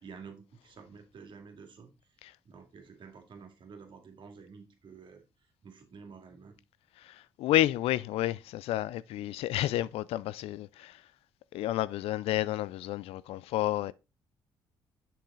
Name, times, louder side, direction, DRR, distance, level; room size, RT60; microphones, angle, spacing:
voice 1, 0.0-1.9 2.4-5.2 5.6-6.6, right 5 dB, 55° right, 2.3 m, -50 dB
voice 2, 7.0-11.0 11.5-13.9, left 14 dB, 80° left, 0.4 m, -30 dB
7.0 x 5.8 x 3.8 m
supercardioid pair, 75°, 10 cm